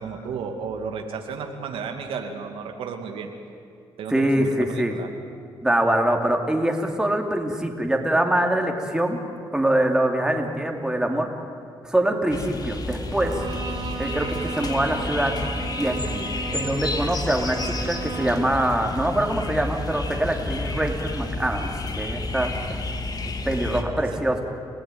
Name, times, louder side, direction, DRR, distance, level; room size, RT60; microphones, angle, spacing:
voice 1, 0.0-3.3 4.0-5.1 23.7-23.8 24.1-24.2, right 5 dB, 80° right, 4 dB, 2.5 m, -33 dB
voice 2, 4.1-5.0 5.6-9.2 9.5-11.3 11.8-13.4 14.0-15.4 15.8-22.6 23.5-24.4, right 1 dB, 5° right, 2 dB, 3.3 m, -24 dB
sound 1, 12.3-23.8, left 2 dB, 45° left, 2.5 m, -31 dB
Bowed string instrument, 13.1-18.6, right 6 dB, 65° right, 2.9 m, -35 dB
29.5 x 16.0 x 9.5 m, 2.3 s
cardioid pair, 80°, 9 cm